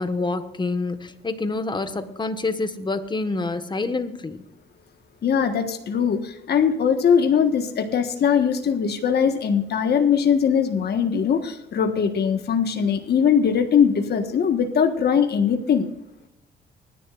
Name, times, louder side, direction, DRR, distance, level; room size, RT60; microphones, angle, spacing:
voice 1, 0.0-4.4, left 3 dB, 25° left, 9 dB, 1.4 m, -27 dB
voice 2, 5.2-15.9, left 7 dB, 55° left, 6 dB, 1.4 m, -21 dB
24.5 x 11.0 x 2.5 m, 0.89 s
cardioid pair, 90°, 20 cm